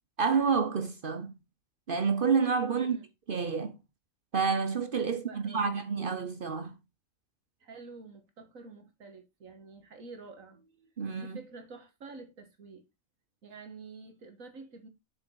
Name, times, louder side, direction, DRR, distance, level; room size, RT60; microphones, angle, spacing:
voice 1, 0.2-1.3 1.9-3.0 3.3-3.8 4.3-6.7 11.0-11.4, right 5 dB, 50° right, 0.9 m, -29 dB
voice 2, 2.7-3.1 5.1-5.8 7.6-12.9 13.4-14.9, right 4 dB, 85° right, 2.1 m, -49 dB
7.1 x 7.0 x 3.9 m
omnidirectional pair, 1.4 m